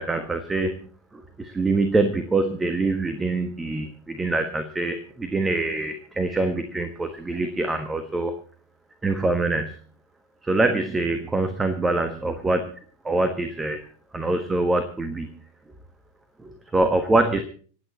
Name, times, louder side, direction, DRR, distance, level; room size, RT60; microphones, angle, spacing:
voice 1, 0.0-8.4 9.0-9.7 10.4-12.8 13.0-13.9 14.1-15.3 16.4-17.4, right 2 dB, 10° right, 9 dB, 1.4 m, -24 dB
26.5 x 9.2 x 4.1 m, 0.43 s
figure-of-eight pair, 90°, 0 cm